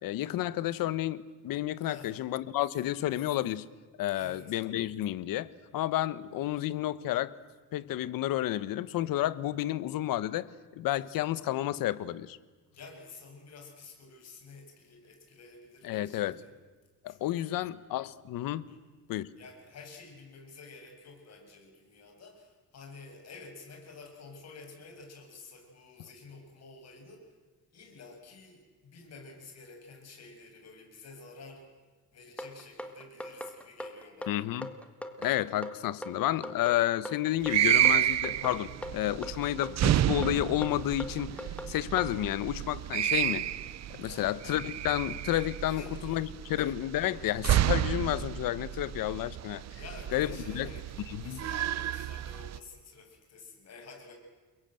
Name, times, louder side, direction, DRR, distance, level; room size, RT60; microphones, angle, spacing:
voice 1, 0.0-3.7 4.0-7.3 7.7-10.5 10.8-12.4 15.8-16.4 17.0-18.7 19.1-19.3 34.3-34.7 35.2-41.3 41.7-43.5 43.9-49.6 50.1-50.7 51.1-51.4, left 14 dB, 80° left, 16 dB, 1.2 m, -31 dB
voice 2, 4.1-4.6 12.7-16.5 17.1-17.7 18.7-18.8 19.4-27.3 27.7-31.7 32.1-34.4 44.0-44.4 45.7-46.5 49.7-54.1, left 3 dB, 50° left, 3 dB, 7.3 m, -50 dB
sound 1, 32.4-42.1, left 1 dB, 5° left, 1.8 m, -40 dB
sound 2, 37.4-52.6, right 12 dB, 50° right, 0.8 m, -31 dB
30.0 x 22.5 x 7.8 m, 1.4 s
cardioid pair, 155°, 34 cm